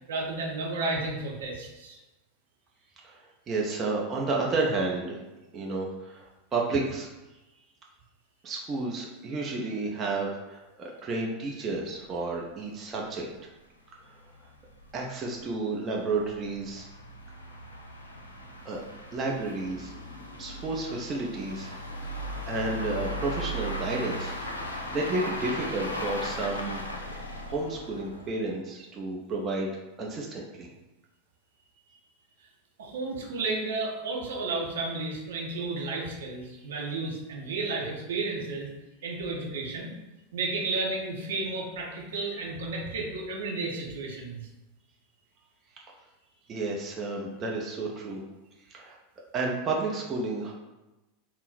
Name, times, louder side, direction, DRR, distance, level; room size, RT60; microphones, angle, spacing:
voice 1, 0.1-2.0 32.8-38.7 39.0-39.9 40.3-44.4, right 3 dB, 65° right, -2 dB, 0.8 m, -32 dB
voice 2, 3.0-5.2 5.5-7.1 8.4-13.3 14.9-16.9 18.6-18.8 19.1-19.9 20.4-21.7 22.2-24.3 24.6-26.8 27.5-29.7 30.0-30.7 46.5-48.2 48.7-48.9 49.3-50.5, right 3 dB, 30° right, -2 dB, 0.7 m, -31 dB
sound 1, 12.0-12.1 12.4-12.5 12.9-13.0 13.3-13.4 14.1-28.5, equal, 85° left, 0.5 m, -37 dB
3.7 x 2.1 x 4.1 m, 1.0 s
figure-of-eight pair, 85°, 0 cm